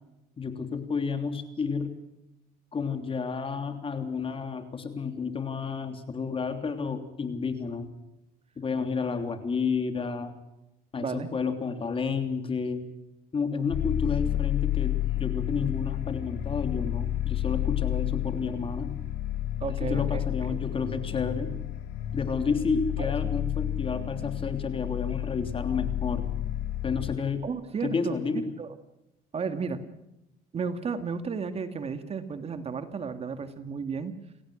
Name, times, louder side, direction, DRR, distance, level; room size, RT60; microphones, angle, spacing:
voice 1, 0.4-1.9 2.7-7.9 8.6-10.3 10.9-12.8 13.3-19.0 19.7-21.5 22.1-26.2 26.8-27.4 27.8-28.5, left 5 dB, 30° left, 7 dB, 3.3 m, -31 dB
sound 1, 13.7-27.2, left 12 dB, 75° left, 3.7 m, -31 dB
voice 2, 19.6-20.2 20.5-20.6 23.0-23.1 27.4-28.2 28.6-28.7 29.3-29.8 30.5-34.1, right 5 dB, 35° right, 9 dB, 2.1 m, -33 dB
29.0 x 17.5 x 6.4 m, 0.91 s
cardioid pair, 105°, 18 cm